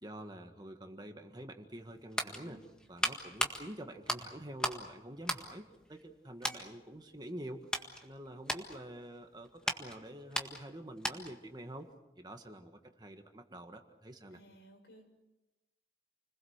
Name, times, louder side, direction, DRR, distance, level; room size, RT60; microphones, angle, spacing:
voice 1, 0.0-2.6 2.9-7.7 8.0-11.9 12.2-14.4, right 1 dB, 25° right, 5 dB, 1.7 m, -47 dB
sound 1, 1.7-4.9 5.2-6.1 6.4-6.7 7.2-11.5 11.7-11.9, equal, 5° left, 1.7 m, -38 dB
voice 2, 14.3-15.1, equal, 80° left, 3 dB, 6.6 m, -57 dB
29.5 x 21.0 x 6.6 m, 1.0 s
head